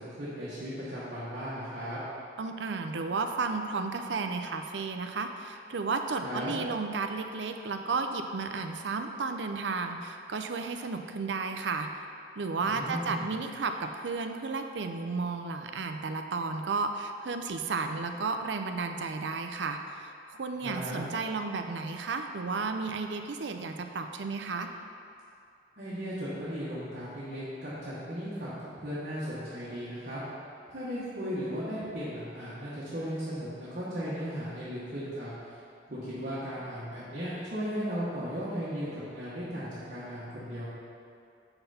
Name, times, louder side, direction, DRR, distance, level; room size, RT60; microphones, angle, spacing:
voice 1, 0.0-2.0 6.2-6.5 12.6-13.3 20.6-21.0 25.8-30.2 30.7-35.6 35.9-40.6, equal, 50° right, -10 dB, 1.4 m, -36 dB
voice 2, 2.4-11.9 12.4-24.7, right 4 dB, 75° right, 6 dB, 0.5 m, -33 dB
6.8 x 5.9 x 4.2 m, 2.5 s
head